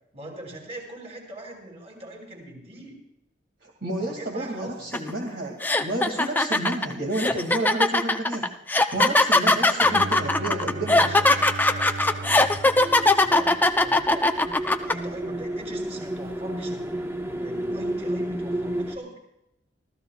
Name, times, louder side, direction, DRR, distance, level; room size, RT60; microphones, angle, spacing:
voice 1, 0.1-3.0 4.0-5.0 9.4-17.0 17.3-19.2, right 1 dB, 35° right, 0 dB, 5.8 m, -41 dB
voice 2, 3.6-8.5 8.9-11.1, right 1 dB, 65° right, -1 dB, 2.3 m, -30 dB
sound 1, 4.9-5.1 5.6-14.9, left 2 dB, 10° left, 0.6 m, -20 dB
Bowed string instrument, 9.8-14.0, right 3 dB, 90° right, 0.6 m, -36 dB
sound 2, 12.7-19.0, right 1 dB, 15° right, 1.0 m, -32 dB
26.5 x 15.0 x 2.4 m, 0.85 s
head